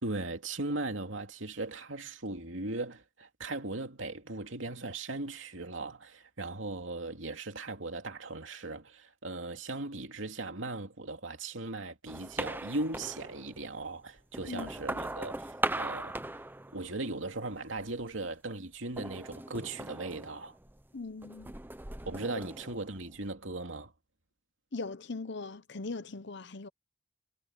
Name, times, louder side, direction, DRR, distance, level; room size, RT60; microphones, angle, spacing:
voice 1, 0.0-16.4 16.7-20.5 22.1-23.9, right 2 dB, 85° right, 2.7 m, -38 dB
sound 1, 12.1-13.7 14.2-17.2 17.5-18.1 19.0-20.9 21.2-23.3, right 2 dB, 10° right, 0.9 m, -39 dB
voice 2, 20.9-21.5 24.7-26.7, left 3 dB, 65° left, 0.9 m, -39 dB
head